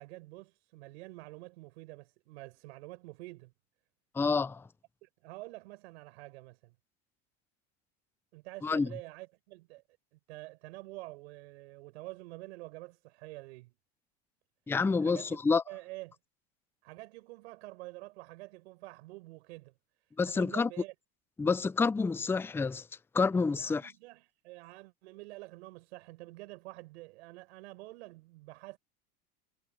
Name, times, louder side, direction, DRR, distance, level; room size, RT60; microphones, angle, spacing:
voice 1, 0.0-3.5 5.0-6.7 8.3-9.8 10.1-13.7 15.0-16.2 16.8-19.7 20.2-20.9 23.5-28.8, right 22 dB, 80° right, 7.5 m, -48 dB
voice 2, 4.1-4.7 8.6-8.9 14.7-15.6 20.2-20.7 21.4-22.8 23.1-23.9, left 4 dB, 5° left, 0.4 m, -28 dB
supercardioid pair, 115°, 33 cm